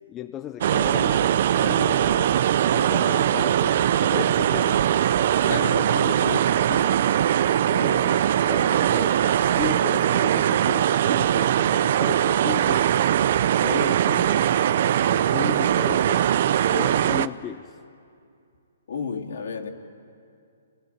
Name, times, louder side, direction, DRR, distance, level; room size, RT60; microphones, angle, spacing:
voice 1, 0.1-2.3 2.7-4.8 7.6-9.3 9.6-13.0 13.6-14.4 15.1-16.3 16.7-17.8, left 10 dB, 20° left, 8 dB, 0.7 m, -35 dB
sound 1, 0.6-17.3, right 10 dB, 55° right, 0.6 m, -21 dB
voice 2, 5.4-6.9 18.9-19.7, left 5 dB, 70° left, 3 dB, 3.2 m, -32 dB
28.0 x 19.0 x 9.0 m, 2.5 s
hypercardioid pair, 140°, 0 cm